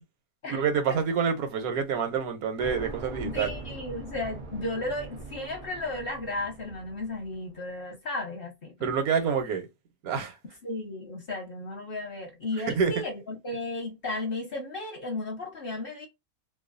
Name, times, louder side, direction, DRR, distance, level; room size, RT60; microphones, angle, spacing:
voice 1, 0.5-3.5 8.8-9.7 10.0-10.4 12.6-13.0, right 6 dB, 85° right, 1.2 m, -27 dB
sound 1, 2.6-7.6, right 3 dB, 70° right, 0.4 m, -42 dB
voice 2, 3.2-8.7 10.6-16.1, left 2 dB, 45° left, 0.9 m, -34 dB
2.6 x 2.2 x 2.4 m
omnidirectional pair, 1.5 m